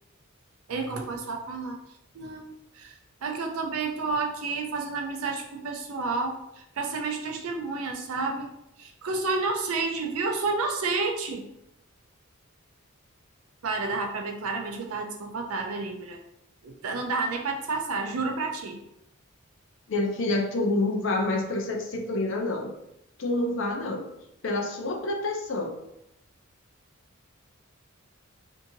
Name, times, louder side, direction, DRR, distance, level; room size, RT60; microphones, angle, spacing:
voice 1, 0.7-1.8 2.1-8.5 8.8-11.4 13.6-16.2 16.6-18.8, right 3 dB, 85° right, 3 dB, 0.5 m, -30 dB
voice 2, 19.9-22.7 23.2-24.1 24.4-25.7, left 2 dB, 60° left, 2 dB, 0.5 m, -27 dB
2.7 x 2.6 x 2.7 m, 0.83 s
head